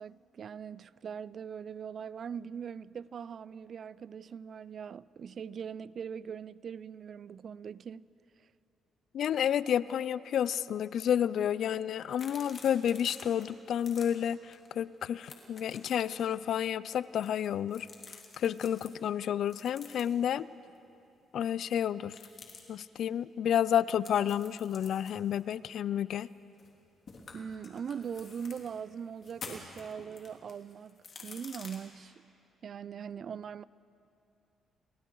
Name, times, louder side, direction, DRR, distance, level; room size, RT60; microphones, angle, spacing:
voice 1, 0.0-8.1 8.4-8.5 27.3-32.1 32.6-33.6, right 7 dB, 55° right, 0.4 m, -41 dB
voice 2, 9.1-17.9 18.4-20.5 21.3-22.2 22.7-26.3, left 9 dB, 70° left, 0.4 m, -30 dB
sound 1, 12.1-13.4 13.7-14.1 14.5-14.7 14.9-16.3 17.0-18.9 19.5-20.3 22.1-22.6 24.0-26.8 27.1-28.7 29.2-31.8, left 5 dB, 45° left, 3.1 m, -49 dB
29.5 x 19.5 x 4.7 m
cardioid pair, 90°, 0 cm